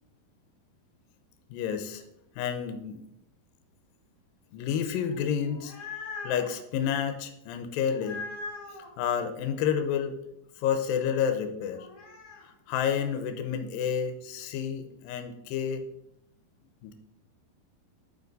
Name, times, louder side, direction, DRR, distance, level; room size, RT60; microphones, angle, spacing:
voice 1, 1.5-2.0 2.4-3.0 4.5-5.8 6.2-8.3 9.0-10.2 10.6-11.9 12.4-15.8 16.8-16.9, left 8 dB, 75° left, 7 dB, 2.3 m, -30 dB
sound 1, 5.4-6.5 7.9-8.9 11.7-12.4, left 4 dB, 50° left, 2.1 m, -40 dB
10.5 x 5.0 x 4.0 m, 0.79 s
omnidirectional pair, 4.5 m